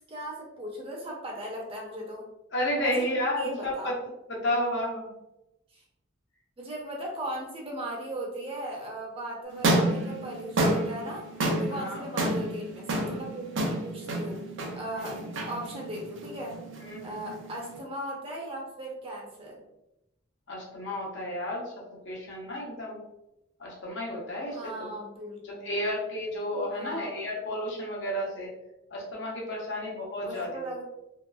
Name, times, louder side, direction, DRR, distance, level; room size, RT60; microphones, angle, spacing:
voice 1, 0.1-2.3 2.8-3.1 3.4-4.0 5.7-5.8 6.6-11.3 11.6-13.5 13.8-14.4 14.7-15.2 15.5-16.5 17.0-19.6 24.5-25.9 26.7-27.3 30.2-30.8, right 1 dB, 30° right, -2 dB, 0.5 m, -38 dB
voice 2, 2.5-3.9 4.3-5.1 11.7-12.0 14.9-15.1 16.8-17.3 20.5-21.6 22.0-23.0 23.6-24.9 25.5-28.5 28.9-30.6, left 1 dB, 65° left, -3 dB, 0.8 m, -32 dB
sound 1, 9.5-17.8, right 1 dB, 75° right, 0.5 m, -30 dB
2.9 x 2.3 x 2.2 m, 0.90 s
head